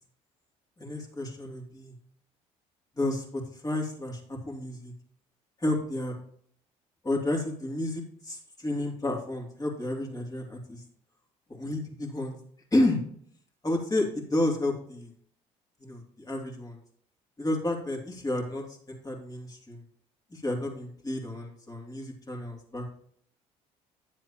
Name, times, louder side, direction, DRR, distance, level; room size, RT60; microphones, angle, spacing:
voice 1, 0.8-1.9 2.9-4.9 5.6-6.1 7.0-10.8 11.5-12.4 12.7-13.0 13.6-15.1 15.8-16.8 17.4-19.8 20.3-23.0, left 1 dB, 25° left, 0 dB, 2.8 m, -31 dB
10.0 x 7.6 x 2.9 m, 0.62 s
supercardioid pair, 65°, 16 cm